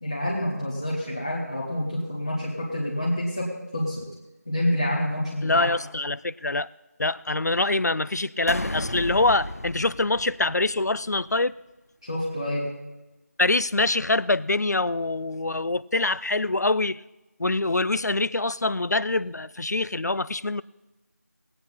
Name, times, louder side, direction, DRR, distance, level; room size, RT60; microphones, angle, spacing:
voice 1, 0.0-4.1 4.5-5.7 12.0-12.7, left 1 dB, 15° left, -6 dB, 1.1 m, -28 dB
voice 2, 5.4-6.7 7.0-11.5 13.4-17.0 17.4-20.6, left 2 dB, 75° left, 18 dB, 0.5 m, -24 dB
sound 1, 8.5-11.0, left 1 dB, 60° left, 0.8 m, -34 dB
19.0 x 8.7 x 4.1 m, 1.0 s
figure-of-eight pair, 180°, 9 cm